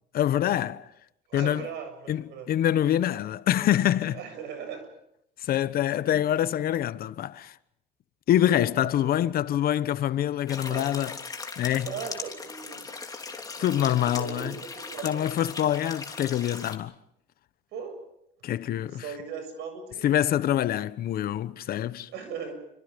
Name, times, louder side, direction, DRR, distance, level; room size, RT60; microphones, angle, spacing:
voice 1, 0.1-0.8 1.3-1.7 2.1-4.2 5.4-7.5 8.3-11.2 11.6-11.9 13.6-14.5 15.0-16.9 18.4-19.1 20.0-22.1, left 11 dB, 60° left, 1.1 m, -25 dB
voice 2, 1.3-2.5 4.1-4.8 6.1-6.2 8.8-9.5 10.7-11.1 11.9-12.9 13.5-15.2 17.7-18.0 19.0-20.2 22.1-22.5, right 6 dB, 85° right, 7.1 m, -39 dB
sound 1, 10.5-16.8, left 4 dB, 20° left, 3.2 m, -39 dB
28.5 x 25.0 x 5.3 m
cardioid pair, 110°, 17 cm